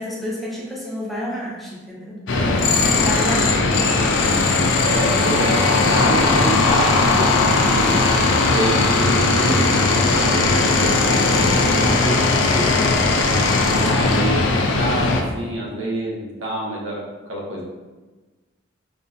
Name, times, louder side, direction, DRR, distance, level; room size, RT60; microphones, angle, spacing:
voice 1, 0.0-2.2 2.8-3.6 12.4-12.9, left 1 dB, ahead, -5 dB, 0.6 m, -29 dB
sound 1, 2.3-15.2, left 3 dB, 65° left, 0.5 m, -18 dB
voice 2, 2.3-2.6 3.3-3.5 4.8-5.7 5.9-8.0 8.5-12.2 12.9-17.0 17.3-17.6, right 1 dB, 80° right, -3 dB, 1.0 m, -28 dB
5.3 x 2.5 x 2.7 m, 1.2 s
head